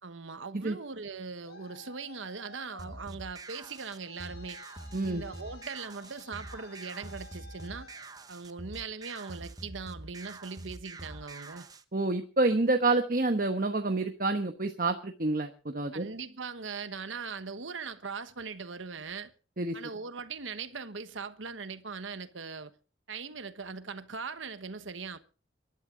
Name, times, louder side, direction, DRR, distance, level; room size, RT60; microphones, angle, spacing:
voice 1, 0.0-4.6 5.1-7.9 8.3-11.7 15.9-19.3 19.7-22.7 23.1-25.2, right 5 dB, 85° right, 1.2 m, -40 dB
Traffic noise roadway noise, 1.0-8.8, left 3 dB, 55° left, 4.5 m, -54 dB
sound 1, 2.8-11.8, right 2 dB, 20° right, 0.9 m, -45 dB
voice 2, 4.9-5.2 11.9-16.1 19.6-19.8, right 2 dB, 45° right, 1.1 m, -28 dB
23.5 x 11.5 x 3.8 m
head